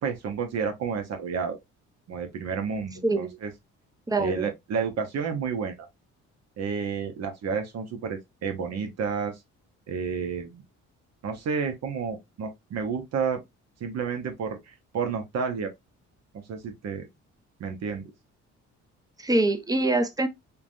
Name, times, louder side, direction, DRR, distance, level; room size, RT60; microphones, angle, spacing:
voice 1, 0.0-1.6 2.1-3.5 4.2-5.9 6.6-9.4 9.9-10.6 11.2-13.4 13.8-15.7 16.3-17.1 17.6-18.1, right 6 dB, 60° right, 0.7 m, -31 dB
voice 2, 4.1-4.5 19.2-20.3, right 2 dB, 10° right, 0.5 m, -24 dB
3.3 x 2.1 x 2.4 m
cardioid pair, 90°, 30 cm